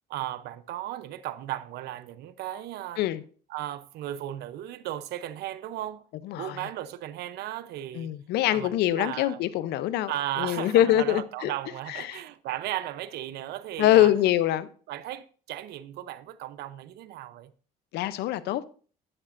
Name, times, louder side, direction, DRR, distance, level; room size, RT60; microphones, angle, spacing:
voice 1, 0.1-3.0 3.5-6.0 6.4-8.1 8.5-9.4 10.1-14.1 14.9-17.5, right 13 dB, 80° right, 0.7 m, -35 dB
voice 2, 6.2-6.6 7.9-10.1 10.4-11.5 11.9-12.2 13.8-14.7 17.9-18.6, left 13 dB, 80° left, 0.6 m, -24 dB
11.0 x 9.9 x 2.6 m
cardioid pair, 105°, 17 cm